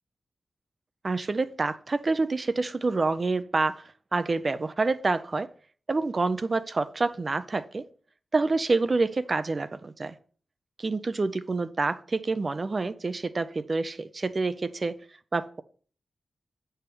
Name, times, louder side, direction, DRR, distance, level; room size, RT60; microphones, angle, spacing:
voice 1, 1.0-3.8 4.1-5.5 5.9-7.8 8.3-10.2 10.8-15.0 15.3-15.6, right 3 dB, 30° right, 0.5 m, -27 dB
8.1 x 5.6 x 6.1 m
wide cardioid pair, 165°, 0 cm